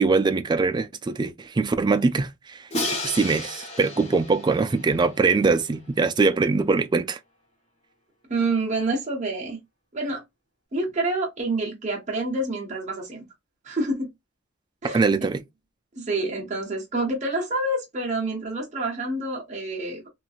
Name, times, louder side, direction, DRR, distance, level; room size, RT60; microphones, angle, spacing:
voice 1, 0.0-2.7 3.0-7.2 14.9-15.4, right 4 dB, 25° right, 0.3 m, -22 dB
Crash cymbal, 2.7-5.7, left 1 dB, 35° left, 1.1 m, -33 dB
voice 2, 8.3-9.6 9.9-10.2 10.7-13.2 13.6-14.1 14.8-15.0 15.9-20.1, right 2 dB, 40° right, 0.9 m, -27 dB
2.9 x 2.6 x 2.3 m
head